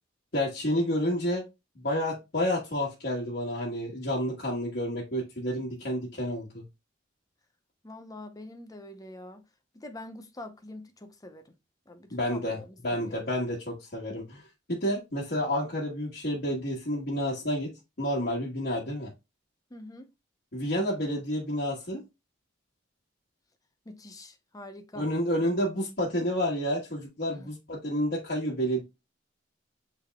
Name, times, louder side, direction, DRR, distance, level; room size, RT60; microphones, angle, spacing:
voice 1, 0.3-1.4 1.8-6.6 12.1-12.6 12.8-14.4 14.7-17.7 18.0-19.1 20.5-22.0 24.9-28.8, equal, 55° left, 1.4 m, -30 dB
voice 2, 7.8-9.4 9.7-11.5 11.9-13.4 19.7-20.1 23.9-25.1 27.3-27.5, left 1 dB, 20° left, 0.6 m, -45 dB
7.0 x 3.4 x 2.2 m
head